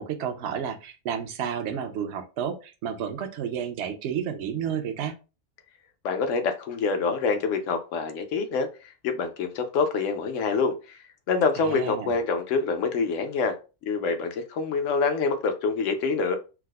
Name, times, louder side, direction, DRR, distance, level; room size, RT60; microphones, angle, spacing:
voice 1, 0.0-5.1 11.6-12.1, right 8 dB, 65° right, 0.8 m, -31 dB
voice 2, 6.0-11.0 11.3-13.6 13.9-16.4, left 4 dB, 70° left, 0.9 m, -26 dB
4.6 x 2.0 x 2.2 m
omnidirectional pair, 1.4 m